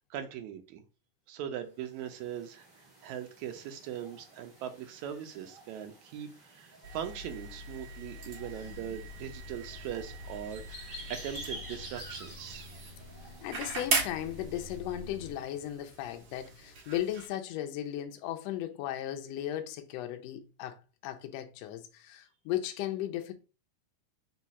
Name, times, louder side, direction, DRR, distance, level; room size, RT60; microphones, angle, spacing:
voice 1, 0.1-0.8 1.3-2.7 3.0-12.7, right 9 dB, 80° right, 2.0 m, -40 dB
sound 1, 1.8-14.8, equal, 10° right, 1.0 m, -51 dB
sound 2, 6.8-17.3, right 4 dB, 60° right, 2.4 m, -39 dB
sound 3, 8.4-15.3, left 2 dB, 45° left, 1.2 m, -51 dB
voice 2, 13.4-20.8 21.0-23.3, left 12 dB, 75° left, 1.6 m, -36 dB
5.1 x 2.3 x 4.1 m
omnidirectional pair, 3.4 m